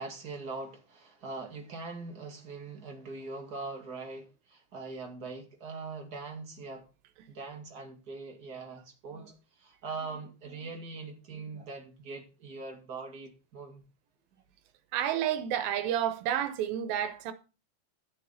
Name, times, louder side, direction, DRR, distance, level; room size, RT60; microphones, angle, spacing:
voice 1, 0.0-6.9 7.3-13.8, right 3 dB, 35° right, 2.0 m, -42 dB
voice 2, 14.9-17.3, right 10 dB, 85° right, 2.8 m, -30 dB
12.0 x 7.4 x 4.0 m
omnidirectional pair, 4.1 m